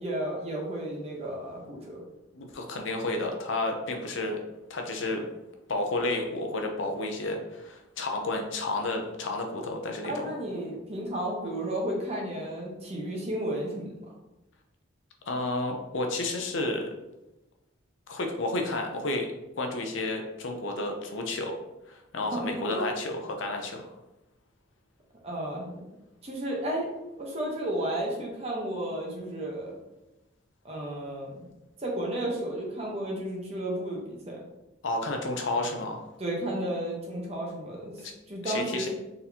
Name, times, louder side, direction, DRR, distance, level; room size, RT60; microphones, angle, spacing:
voice 1, 0.0-2.0 10.0-14.1 22.3-22.4 22.7-22.8 25.2-25.9 26.2-26.9 27.2-29.8 30.6-31.5 31.8-34.4 36.2-38.9, right 1 dB, 30° right, -2 dB, 0.9 m, -33 dB
voice 2, 2.3-4.4 4.7-5.3 5.7-10.3 15.3-16.9 18.1-19.3 19.6-21.5 21.9-23.9 34.8-36.1 38.0-38.1 38.4-38.9, left 2 dB, 75° left, 3 dB, 0.6 m, -31 dB
4.1 x 3.9 x 2.8 m, 0.99 s
head